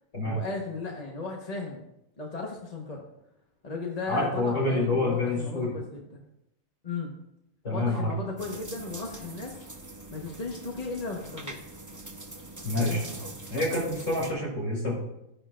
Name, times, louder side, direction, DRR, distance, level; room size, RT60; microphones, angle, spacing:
voice 1, 0.2-1.8 2.2-3.1 3.6-6.2 6.8-7.1 7.7-9.6 10.1-11.6 12.8-13.3, left 3 dB, 30° left, -1 dB, 1.2 m, -36 dB
voice 2, 4.1-5.7 7.6-8.1 12.6-13.2 13.5-15.0, left 2 dB, 55° left, -3 dB, 4.9 m, -27 dB
sound 1, 8.4-14.3, right 2 dB, 15° right, 0.7 m, -42 dB
14.5 x 10.5 x 2.5 m, 0.85 s
omnidirectional pair, 1.5 m